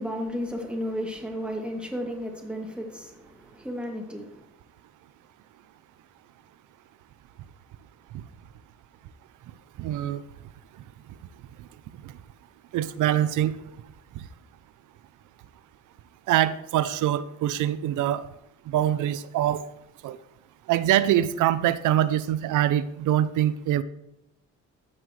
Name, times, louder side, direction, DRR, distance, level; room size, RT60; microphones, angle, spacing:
voice 1, 0.0-4.4, equal, 5° right, 0 dB, 2.7 m, -33 dB
voice 2, 9.8-10.2 11.6-11.7 12.0-12.1 12.7-13.5 14.1-14.2 16.3-18.2 18.7-19.6 20.0-20.2 20.7-23.8, right 12 dB, 80° right, 15 dB, 0.6 m, -24 dB
13.5 x 7.5 x 3.2 m, 0.87 s
cardioid pair, 90°, 30 cm